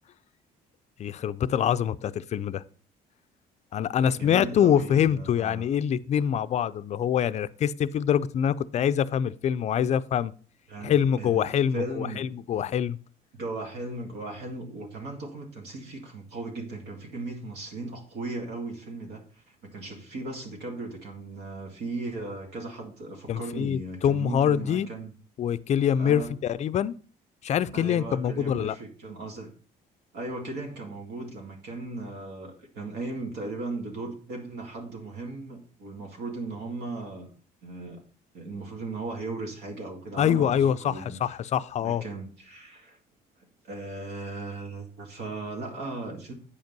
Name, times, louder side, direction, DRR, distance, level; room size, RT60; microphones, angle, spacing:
voice 1, 1.0-2.6 3.7-10.3 10.8-13.0 23.3-24.9 25.4-26.9 27.4-28.8 40.2-42.0, left 9 dB, 40° left, 0.4 m, -25 dB
voice 2, 4.0-5.6 10.7-12.3 13.3-25.1 26.0-26.3 27.7-29.5 30.1-37.3 37.6-38.0 38.3-41.2 41.8-43.0 43.6-46.3, right 2 dB, 75° right, 2.3 m, -37 dB
8.4 x 5.2 x 5.3 m
cardioid pair, 110°, 17 cm